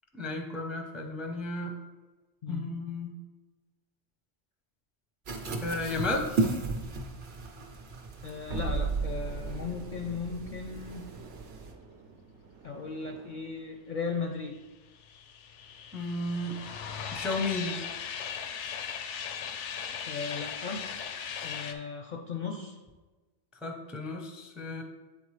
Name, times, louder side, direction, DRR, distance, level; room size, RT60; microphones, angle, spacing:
voice 1, 0.1-1.8 2.5-3.1 5.6-6.4 15.9-16.6 17.1-17.7 23.6-24.8, left 2 dB, ahead, 2 dB, 0.4 m, -33 dB
sound 1, 5.2-11.7, right 3 dB, 55° right, 0.8 m, -36 dB
voice 2, 8.2-11.1 12.6-14.6 20.1-20.8 21.4-22.8, left 5 dB, 60° left, 2 dB, 0.5 m, -36 dB
sound 2, 8.5-13.6, right 4 dB, 80° right, 0.9 m, -38 dB
sound 3, 14.6-21.7, left 7 dB, 90° left, 0.9 m, -38 dB
8.0 x 4.2 x 3.2 m, 1.2 s
omnidirectional pair, 1.2 m